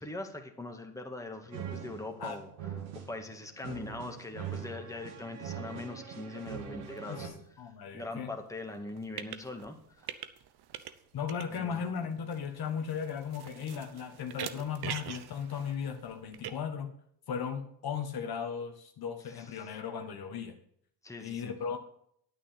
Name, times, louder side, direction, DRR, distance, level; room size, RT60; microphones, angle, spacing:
voice 1, 0.0-2.5 2.9-7.3 7.9-10.1 11.5-11.8 19.3-19.7 21.0-21.5, left 2 dB, 5° left, 3 dB, 2.0 m, -42 dB
sound 1, 1.5-7.3, right 8 dB, 80° right, 2.5 m, -42 dB
sound 2, 6.4-6.5 6.9-7.0 8.7-9.7 10.0-11.0 11.3-16.5, right 10 dB, 55° right, 1.0 m, -43 dB
voice 2, 7.6-8.3 11.1-16.9 17.3-20.6 21.2-21.8, left 7 dB, 50° left, 5 dB, 1.5 m, -36 dB
9.7 x 8.8 x 5.8 m, 0.67 s
supercardioid pair, 70°, 47 cm